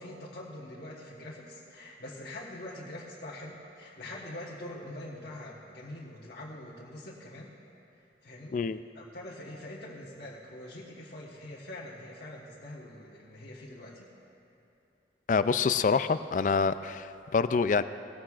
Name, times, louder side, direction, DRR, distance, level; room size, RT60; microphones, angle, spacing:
voice 1, 0.0-7.5 8.2-14.1, left 1 dB, 70° left, -6 dB, 1.4 m, -44 dB
voice 2, 15.3-17.8, left 5 dB, 45° left, 13 dB, 0.3 m, -26 dB
19.5 x 14.5 x 2.5 m, 2.7 s
head